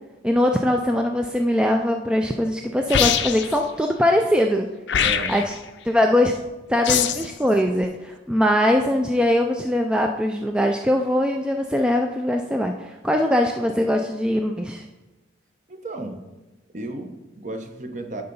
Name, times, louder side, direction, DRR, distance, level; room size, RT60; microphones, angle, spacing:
voice 1, 0.2-4.7 5.3-5.5 5.8-6.4 6.7-14.8, left 1 dB, 5° right, 3 dB, 0.3 m, -21 dB
sound 1, 2.9-3.6 4.9-5.6 6.8-7.3, left 8 dB, 75° left, 0.6 m, -22 dB
voice 2, 5.0-5.4 15.7-16.2 16.7-18.2, right 1 dB, 40° right, 5 dB, 0.9 m, -33 dB
11.0 x 3.8 x 5.4 m, 1.1 s
head